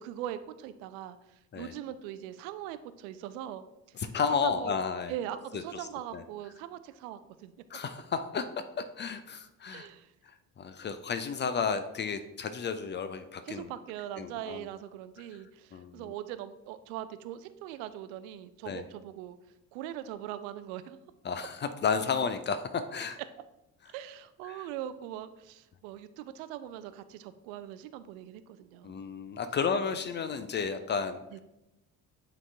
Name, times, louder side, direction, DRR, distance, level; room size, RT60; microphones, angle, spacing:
voice 1, 0.0-3.7 4.4-4.7 5.1-7.5 9.7-10.1 13.5-19.4 19.7-21.0 23.9-29.0 31.3-31.4, right 11 dB, 60° right, 12 dB, 0.5 m, -41 dB
voice 2, 4.0-5.1 5.5-5.6 6.1-6.2 7.7-8.5 9.0-9.9 10.6-13.7 14.2-14.6 15.7-16.0 18.7-18.8 21.2-23.2 24.5-24.7 28.8-31.4, left 5 dB, 25° left, 10 dB, 0.4 m, -32 dB
8.8 x 4.0 x 3.3 m, 0.91 s
figure-of-eight pair, 45°, 46 cm